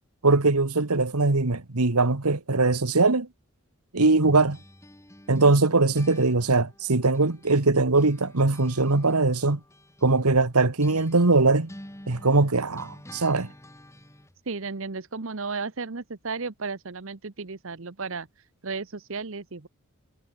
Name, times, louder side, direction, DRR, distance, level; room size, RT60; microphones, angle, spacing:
voice 1, 0.2-3.3 3.9-4.6 5.3-9.6 10.0-11.7 12.1-13.5, right 3 dB, 85° right, 1.6 m, -21 dB
sound 1, 4.2-7.7 8.0-14.4, left 1 dB, 10° left, 3.0 m, -49 dB
voice 2, 14.5-19.7, right 4 dB, 60° right, 1.0 m, -34 dB
head